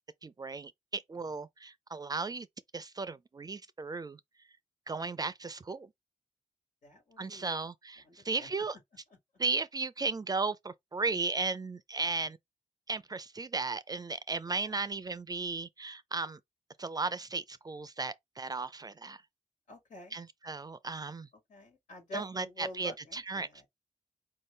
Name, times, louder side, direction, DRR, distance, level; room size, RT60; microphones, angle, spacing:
voice 1, 0.2-2.5 2.7-4.2 4.9-5.9 7.2-8.8 9.4-12.4 12.9-16.4 16.8-19.2 20.1-21.3 22.1-23.7, right 3 dB, 30° right, 0.4 m, -35 dB
voice 2, 6.8-7.6 8.0-8.5 12.2-12.3 14.6-14.7 19.7-20.1 21.5-23.6, left 1 dB, 90° left, 1.9 m, -47 dB
4.6 x 2.7 x 3.2 m
cardioid pair, 75°, 13 cm